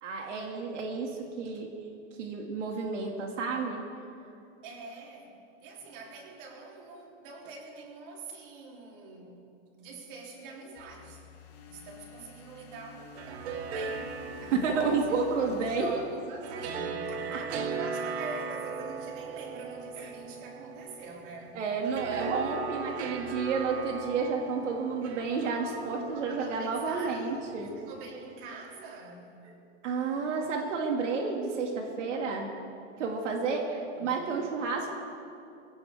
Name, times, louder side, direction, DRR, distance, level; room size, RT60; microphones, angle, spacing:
voice 1, 0.0-1.7 2.2-3.8 14.5-16.0 20.0-20.1 21.5-27.7 29.8-32.5 33.0-34.9, right 4 dB, 85° right, 1 dB, 2.1 m, -31 dB
voice 2, 4.6-5.3 5.6-9.4 9.8-11.2 11.7-14.3 14.6-21.6 26.1-29.4 33.9-34.3, right 4 dB, 45° right, -1 dB, 3.2 m, -45 dB
sound 1, 10.8-16.9, left 5 dB, 30° left, 2.0 m, -51 dB
sound 2, 13.0-28.2, right 5 dB, 65° right, 1.3 m, -39 dB
22.5 x 16.5 x 3.5 m, 2.6 s
supercardioid pair, 170°, 36 cm